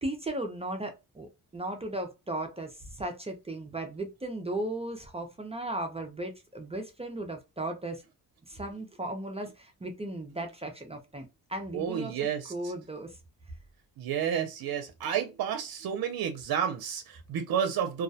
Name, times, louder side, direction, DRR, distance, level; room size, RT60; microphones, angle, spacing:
voice 1, 0.0-8.0 8.5-13.2, right 1 dB, 15° right, 0.4 m, -36 dB
voice 2, 11.7-12.7 14.0-18.0, right 8 dB, 70° right, 0.6 m, -31 dB
2.3 x 2.1 x 2.6 m
cardioid pair, 110°, 37 cm